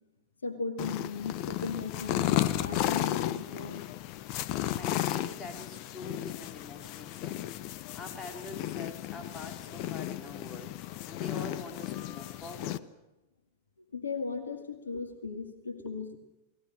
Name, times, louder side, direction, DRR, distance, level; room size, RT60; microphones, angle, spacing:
voice 1, 0.4-3.8 4.5-4.8 13.9-16.2, left 4 dB, 75° left, 7 dB, 2.1 m, -37 dB
sound 1, 0.8-12.8, left 14 dB, 45° left, 1.0 m, -34 dB
voice 2, 4.6-10.7 11.1-12.9 15.8-16.2, left 2 dB, 20° left, 4 dB, 4.2 m, -45 dB
29.5 x 20.5 x 6.5 m, 0.99 s
figure-of-eight pair, 90°, 0 cm